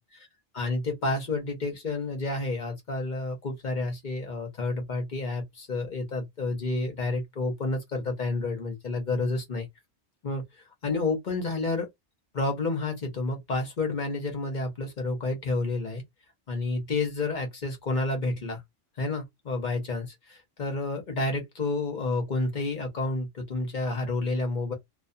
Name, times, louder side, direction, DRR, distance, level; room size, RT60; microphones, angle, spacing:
voice 1, 0.5-9.7 10.2-10.4 10.8-11.9 12.3-16.0 16.5-18.6 19.0-24.7, left 2 dB, 45° left, 0.8 m, -30 dB
2.4 x 2.2 x 2.6 m
omnidirectional pair, 1.2 m